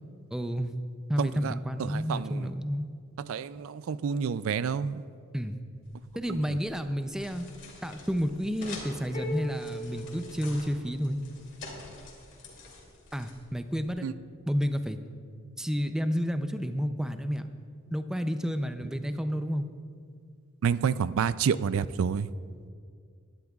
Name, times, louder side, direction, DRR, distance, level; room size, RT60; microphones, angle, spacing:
voice 1, 0.3-0.8 1.1-2.9 5.3-5.6 6.2-7.4 7.8-11.2 13.1-14.1 14.5-15.0 15.6-17.5 17.9-19.6, equal, 5° right, 8 dB, 0.4 m, -30 dB
voice 2, 1.2-1.5 1.8-2.5 3.2-5.0 6.3-6.6 14.0-14.1 20.6-22.3, right 7 dB, 75° right, 16 dB, 0.4 m, -29 dB
sound 1, 5.8-13.9, left 3 dB, 60° left, 2.7 m, -48 dB
sound 2, 9.1-11.1, left 1 dB, 40° left, 2.0 m, -39 dB
20.5 x 12.0 x 2.4 m, 2.2 s
head